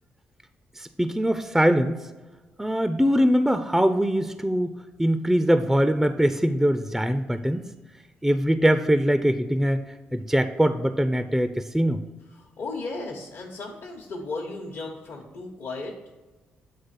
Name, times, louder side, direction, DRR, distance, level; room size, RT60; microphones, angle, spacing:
voice 1, 0.8-2.0 2.6-4.7 5.0-7.7 8.2-9.8 10.1-12.0, equal, 5° right, 9 dB, 0.4 m, -22 dB
voice 2, 12.3-15.9, left 3 dB, 65° left, -3 dB, 1.0 m, -35 dB
8.2 x 3.2 x 5.7 m, 1.2 s
hypercardioid pair, 50°, 5 cm